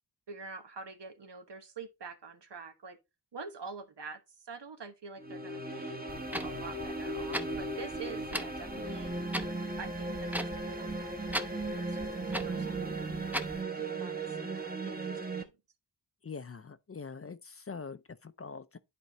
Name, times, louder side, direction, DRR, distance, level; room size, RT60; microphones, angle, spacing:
voice 1, 0.3-3.0 3.3-6.0 6.4-9.1 9.8-13.1 13.8-15.5, right 4 dB, 80° right, 1.3 m, -46 dB
sound 1, 5.2-15.4, right 2 dB, 20° right, 1.1 m, -37 dB
Clock, 6.1-13.6, equal, 5° right, 0.6 m, -41 dB
voice 2, 16.2-18.8, left 5 dB, 35° left, 0.5 m, -44 dB
10.5 x 4.4 x 3.0 m
wide cardioid pair, 100°, 42 cm